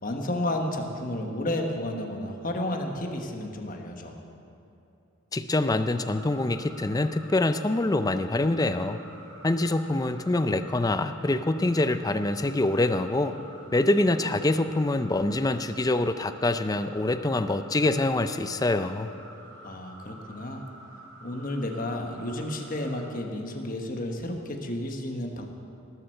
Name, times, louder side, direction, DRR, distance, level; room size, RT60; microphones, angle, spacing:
voice 1, 0.0-4.2 19.6-20.6 21.2-25.5, left 1 dB, 40° left, 3 dB, 1.3 m, -32 dB
voice 2, 5.3-9.0 9.4-13.4 13.7-19.1, left 2 dB, 15° left, 10 dB, 0.4 m, -25 dB
sound 1, 5.9-23.1, right 1 dB, 90° right, 3.3 m, -49 dB
19.0 x 7.8 x 6.6 m, 2.7 s
head